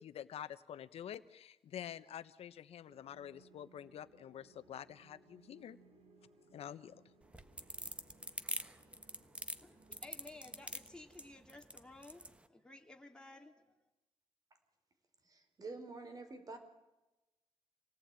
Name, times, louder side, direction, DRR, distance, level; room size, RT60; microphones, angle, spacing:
voice 1, 0.0-5.8 6.5-6.9, left 10 dB, 85° left, 13 dB, 1.1 m, -48 dB
sound 1, 2.9-13.0, right 3 dB, 85° right, 4.5 m, -66 dB
sound 2, 7.2-12.3, right 1 dB, 10° right, 1.3 m, -44 dB
voice 2, 9.6-13.6, left 2 dB, 10° left, 2 dB, 2.7 m, -55 dB
voice 3, 15.2-16.6, right 3 dB, 40° right, 7 dB, 4.6 m, -48 dB
27.0 x 18.5 x 9.1 m, 1.0 s
wide cardioid pair, 140°, 10 cm